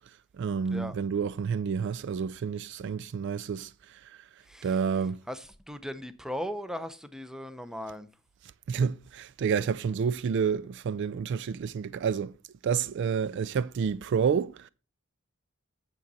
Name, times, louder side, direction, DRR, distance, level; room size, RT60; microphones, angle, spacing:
voice 1, 0.4-4.2 4.6-5.2 8.7-12.3 12.6-14.7, right 6 dB, 55° right, 0.3 m, -29 dB
voice 2, 5.3-8.1, equal, 5° right, 0.6 m, -38 dB
8.9 x 7.0 x 4.1 m
head